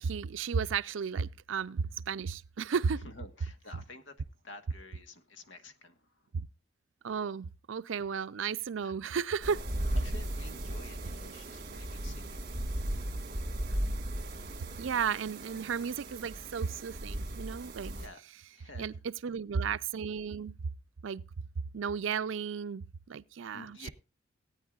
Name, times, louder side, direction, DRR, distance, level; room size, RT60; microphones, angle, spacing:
voice 1, 0.0-3.1 6.3-6.5 7.0-9.6 14.8-17.9 18.8-20.6 21.0-21.2 21.7-23.9, right 6 dB, 90° right, 0.5 m, -34 dB
voice 2, 3.0-6.0 8.8-8.9 9.9-12.5 13.7-13.8 17.8-18.9 23.5-23.9, left 2 dB, 80° left, 1.4 m, -50 dB
sound 1, 9.4-18.1, right 1 dB, 45° right, 2.1 m, -36 dB
18.0 x 9.4 x 2.4 m
head